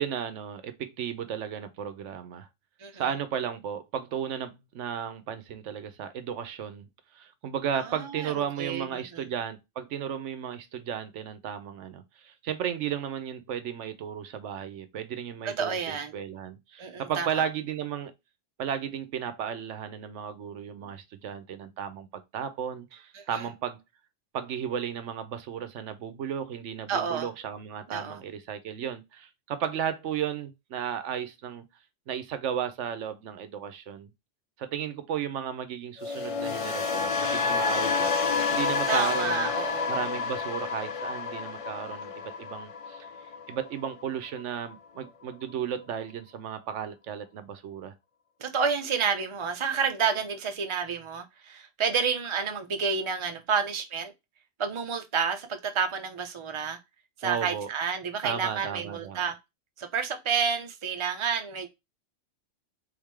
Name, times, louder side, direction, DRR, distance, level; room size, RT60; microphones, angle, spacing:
voice 1, 0.0-2.5 2.9-6.9 7.1-18.1 18.6-23.8 24.3-31.6 32.1-34.1 34.6-39.5 39.9-43.1 43.5-47.9 57.2-57.7 58.2-59.3, right 8 dB, 80° right, 1.0 m, -34 dB
voice 2, 7.8-9.3 15.6-16.1 16.8-17.4 23.1-23.5 26.9-27.3 27.9-28.2 38.9-40.0 48.4-54.1 54.6-56.8 57.2-59.4 59.8-61.7, right 6 dB, 30° right, 0.7 m, -30 dB
sound 1, 36.0-44.1 44.4-44.7, left 4 dB, 50° left, 0.4 m, -29 dB
3.7 x 3.6 x 3.2 m
omnidirectional pair, 1.2 m